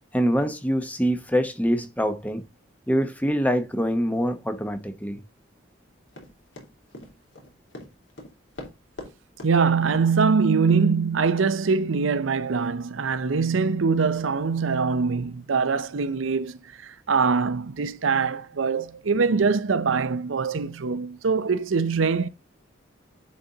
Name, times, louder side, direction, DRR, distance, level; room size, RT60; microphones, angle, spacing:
voice 1, 0.1-2.4 2.9-5.2, equal, 10° left, 0.9 m, -24 dB
Run, 6.1-9.1 9.4-9.5 9.9-10.2 10.7-10.8 11.4-11.5, left 1 dB, 70° left, 3.0 m, -41 dB
voice 2, 9.4-22.3, right 5 dB, 90° right, 0.6 m, -23 dB
10.5 x 4.3 x 3.8 m
head